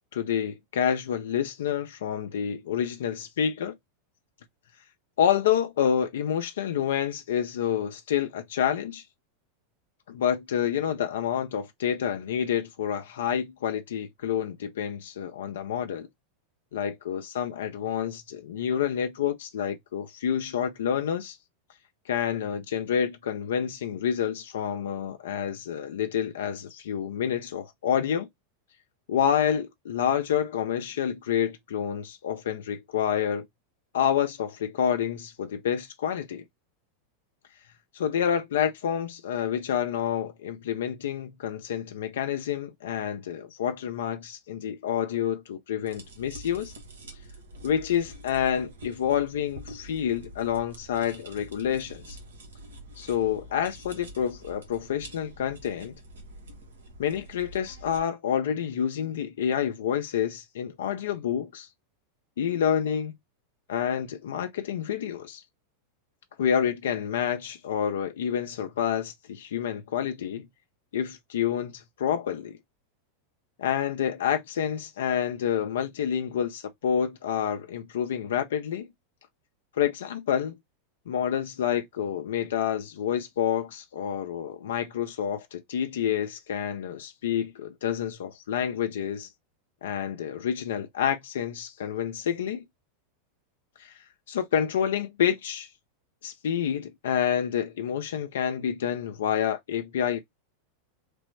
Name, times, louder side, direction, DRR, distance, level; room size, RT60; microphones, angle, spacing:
voice 1, 0.1-3.8 5.2-9.0 10.1-16.1 16.7-21.4 22.1-28.3 29.1-33.5 33.9-36.4 37.9-46.7 47.6-52.2 53.0-55.9 57.0-61.7 62.4-63.2 63.7-65.4 66.4-70.5 70.9-72.6 73.6-78.9 79.8-80.6 81.1-89.3 89.8-92.6 93.8-94.0 94.3-95.7 96.2-100.2, left 9 dB, 75° left, 0.4 m, -28 dB
sound 1, 45.9-58.0, equal, 85° right, 1.0 m, -46 dB
3.3 x 2.0 x 3.1 m
hypercardioid pair, 100°, 0 cm